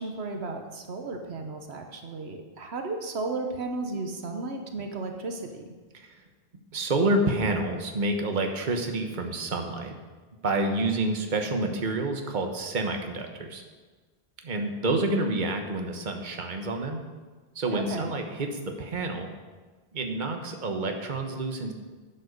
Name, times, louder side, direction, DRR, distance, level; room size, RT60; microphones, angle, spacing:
voice 1, 0.0-5.7 17.7-18.1, right 3 dB, 80° right, 4 dB, 1.3 m, -34 dB
voice 2, 6.7-9.9 10.4-13.6 14.4-17.0 17.5-18.5 18.8-19.3 19.9-21.7, right 2 dB, 50° right, 4 dB, 1.3 m, -28 dB
10.0 x 8.0 x 6.6 m, 1.3 s
omnidirectional pair, 1.1 m